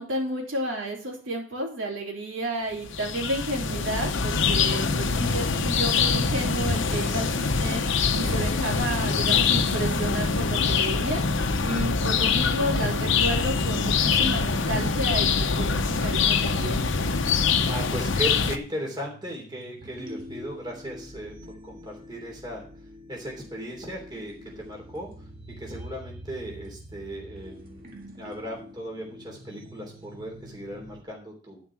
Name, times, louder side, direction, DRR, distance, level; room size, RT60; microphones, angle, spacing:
voice 1, 0.0-16.8, right 1 dB, 70° right, -1 dB, 3.4 m, -32 dB
sound 1, 2.8-18.6, left 5 dB, 65° left, 0.8 m, -24 dB
sound 2, 12.3-31.0, equal, 45° right, 1.8 m, -45 dB
voice 2, 17.4-21.3 21.6-22.6 23.1-25.1 25.6-27.9 28.1-31.6, right 1 dB, 20° right, -1 dB, 3.2 m, -37 dB
12.0 x 5.2 x 6.0 m, 0.41 s
head